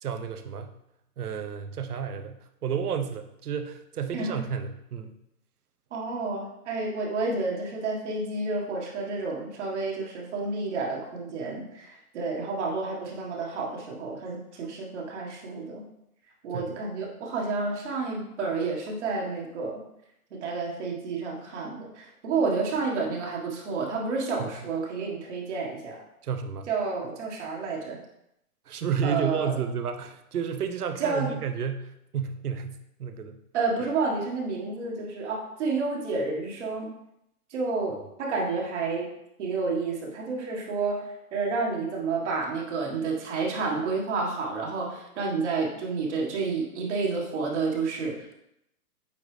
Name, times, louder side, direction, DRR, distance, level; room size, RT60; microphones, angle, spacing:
voice 1, 0.0-0.7 1.2-5.2 16.5-16.7 24.4-24.5 26.2-26.7 28.7-33.4, right 7 dB, 75° right, 7 dB, 0.9 m, -31 dB
voice 2, 5.9-15.9 16.4-19.8 20.3-26.0 26.7-28.0 29.0-29.6 31.0-31.3 33.5-36.9 37.5-39.1 39.4-48.3, right 4 dB, 50° right, -1 dB, 1.6 m, -30 dB
8.8 x 4.0 x 3.3 m, 0.80 s
hypercardioid pair, 155°, 46 cm